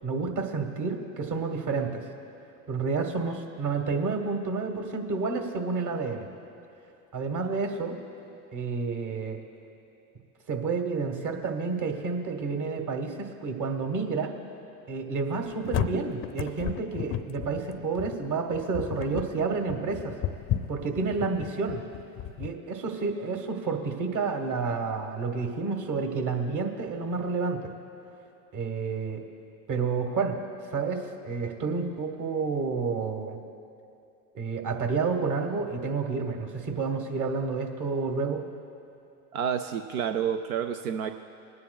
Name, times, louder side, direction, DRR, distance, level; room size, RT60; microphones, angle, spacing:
voice 1, 0.0-2.0 2.7-6.3 7.1-8.0 8.5-9.4 10.5-14.3 14.9-20.1 20.7-21.8 22.4-27.7 28.5-29.2 29.7-30.4 30.7-33.4 34.3-38.4, right 4 dB, 45° right, 4 dB, 1.5 m, -30 dB
sound 1, 15.3-22.5, left 10 dB, 35° left, 0.5 m, -33 dB
voice 2, 39.3-41.1, right 8 dB, 90° right, 7 dB, 0.5 m, -29 dB
26.5 x 9.5 x 2.3 m, 2.7 s
hypercardioid pair, 85°, 41 cm